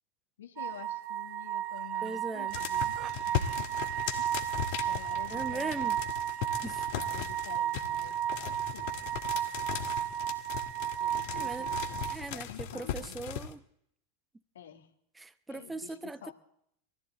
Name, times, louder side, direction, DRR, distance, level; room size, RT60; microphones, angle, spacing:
voice 1, 0.4-3.8 4.2-4.5 4.9-5.9 6.9-10.1 11.0-13.2 14.5-14.9 15.5-16.3, left 10 dB, 75° left, 2.1 m, -49 dB
sound 1, 0.6-12.2, right 11 dB, 40° right, 0.8 m, -34 dB
voice 2, 2.0-2.6 5.3-6.0 6.6-6.8 11.3-11.7 12.1-13.6 15.2-16.3, right 3 dB, 10° right, 0.9 m, -39 dB
sound 2, 2.5-13.5, left 9 dB, 55° left, 1.7 m, -38 dB
22.5 x 14.0 x 4.0 m
hypercardioid pair, 95°, 0 cm